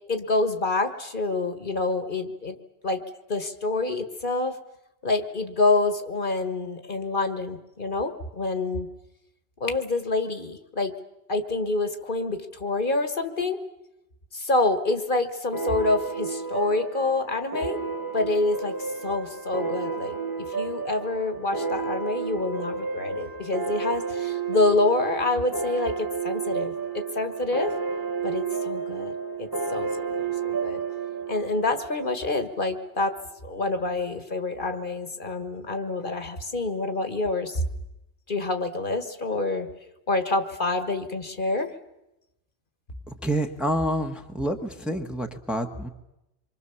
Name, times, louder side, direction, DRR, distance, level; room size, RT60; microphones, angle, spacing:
voice 1, 0.1-2.5 2.8-3.0 3.3-4.6 5.0-8.9 9.6-10.9 11.3-13.6 14.3-17.8 18.1-18.7 19.0-27.7 28.2-29.1 29.4-30.8 31.3-33.2 33.4-37.6 38.3-39.7 40.1-41.7, left 2 dB, 50° left, 8 dB, 1.6 m, -27 dB
sound 1, 15.5-32.6, right 5 dB, 20° right, 1.2 m, -31 dB
voice 2, 43.1-45.9, equal, ahead, 4 dB, 1.2 m, -28 dB
26.0 x 24.0 x 7.0 m, 0.91 s
omnidirectional pair, 1.1 m